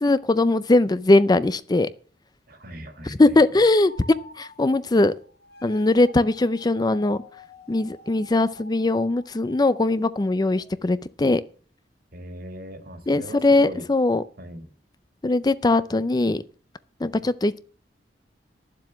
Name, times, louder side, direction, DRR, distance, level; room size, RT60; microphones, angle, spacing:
voice 1, 0.0-1.9 3.1-3.9 4.4-5.1 5.6-7.2 7.7-11.4 13.1-14.2 15.2-16.4 17.0-17.6, left 2 dB, 25° left, 0.5 m, -20 dB
voice 2, 2.5-3.6 12.1-13.8 14.4-14.7, right 1 dB, 55° right, 2.3 m, -39 dB
sound 1, 3.9-10.8, left 1 dB, 60° left, 2.0 m, -48 dB
11.5 x 7.6 x 6.2 m
head